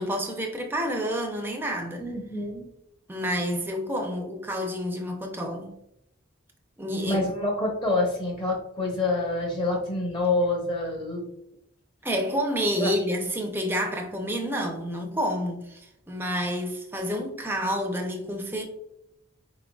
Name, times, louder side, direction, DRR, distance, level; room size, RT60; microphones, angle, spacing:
voice 1, 0.0-2.0 3.1-5.7 6.8-7.2 12.0-18.6, equal, 10° right, 0.6 m, -29 dB
voice 2, 2.0-2.6 7.0-11.3 12.8-12.9, left 2 dB, 25° left, 1.0 m, -27 dB
4.5 x 3.7 x 2.3 m
head